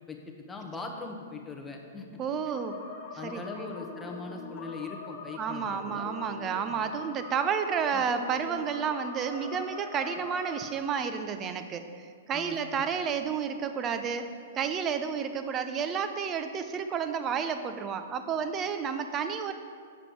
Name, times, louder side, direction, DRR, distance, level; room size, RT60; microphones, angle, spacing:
voice 1, 0.1-2.2 3.2-6.0 6.7-6.9 7.9-8.0 12.3-12.6, left 3 dB, 10° left, 1 dB, 1.0 m, -41 dB
voice 2, 2.2-3.0 3.2-3.7 5.4-14.3 14.5-19.5, right 7 dB, 25° right, 8 dB, 0.6 m, -31 dB
sound 1, 2.5-10.7, left 4 dB, 45° left, 1.1 m, -43 dB
7.7 x 5.1 x 6.2 m, 2.1 s
hypercardioid pair, 140°, 0 cm